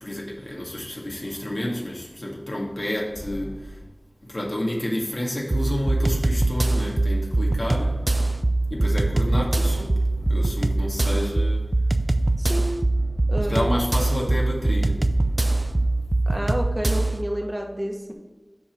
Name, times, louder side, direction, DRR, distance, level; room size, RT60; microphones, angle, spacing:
voice 1, 0.0-3.8 4.2-8.0 8.7-10.0 10.3-11.7 13.5-15.0, left 1 dB, 55° left, -2 dB, 2.0 m, -29 dB
sound 1, 1.2-4.0 6.0-6.9 7.7-10.7 12.3-16.2, equal, 75° right, 2.1 m, -40 dB
sound 2, 5.5-17.2, right 2 dB, 50° right, 0.5 m, -23 dB
voice 2, 12.4-12.7 13.3-13.7 16.3-18.1, equal, 15° right, 1 dB, 1.4 m, -29 dB
6.9 x 5.2 x 6.0 m, 1.2 s
wide cardioid pair, 40°, 0 cm